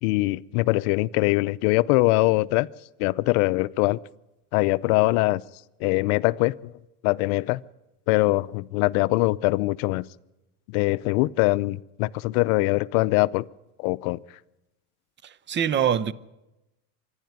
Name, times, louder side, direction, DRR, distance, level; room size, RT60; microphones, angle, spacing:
voice 1, 0.0-2.7 3.0-4.0 4.5-5.4 5.8-6.5 7.0-7.6 8.1-10.0 10.7-13.4 13.8-14.2, left 21 dB, 65° left, 0.7 m, -22 dB
voice 2, 15.2-16.1, right 8 dB, 25° right, 0.8 m, -24 dB
26.0 x 11.5 x 9.4 m
supercardioid pair, 120°, 45 cm